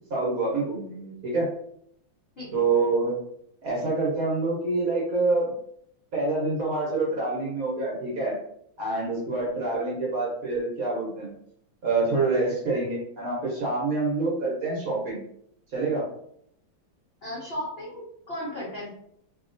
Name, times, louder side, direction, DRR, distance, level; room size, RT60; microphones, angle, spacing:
voice 1, 0.1-1.5 2.5-3.1 3.6-5.5 6.1-8.3 8.8-11.3 11.8-15.2 15.7-16.1, right 3 dB, 60° right, -5 dB, 1.0 m, -26 dB
voice 2, 17.2-18.9, left 1 dB, 60° left, -7 dB, 0.6 m, -35 dB
2.9 x 2.7 x 2.5 m, 0.70 s
omnidirectional pair, 2.2 m